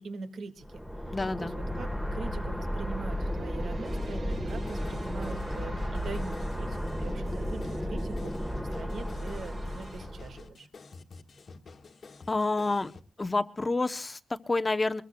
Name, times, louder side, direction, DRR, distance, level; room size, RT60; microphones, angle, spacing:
voice 1, 0.0-10.7, right 4 dB, 80° right, 8 dB, 1.7 m, -43 dB
sound 1, 0.6-10.5, equal, ahead, 1.3 m, -34 dB
voice 2, 1.1-1.5 12.3-12.9 13.2-15.0, left 3 dB, 20° left, 11 dB, 0.7 m, -28 dB
sound 2, 2.8-10.1, right 3 dB, 45° right, 1.2 m, -50 dB
sound 3, 3.8-13.0, left 4 dB, 50° left, 1.4 m, -49 dB
24.0 x 21.0 x 2.2 m, 0.38 s
wide cardioid pair, 175°, 0 cm